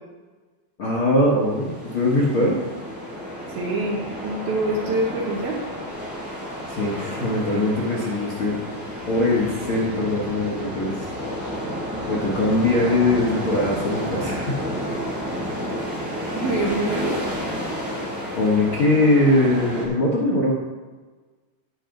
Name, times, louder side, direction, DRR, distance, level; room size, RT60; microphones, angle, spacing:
voice 1, 0.8-2.6 6.7-8.5 9.1-11.1 12.1-14.6 18.4-20.5, left 2 dB, 85° left, -5 dB, 1.1 m, -21 dB
sound 1, 1.2-19.8, equal, 5° right, 2.7 m, -31 dB
voice 2, 3.6-5.6 16.4-17.2, right 2 dB, 65° right, -1 dB, 2.6 m, -25 dB
18.0 x 5.9 x 3.9 m, 1.3 s
omnidirectional pair, 5.3 m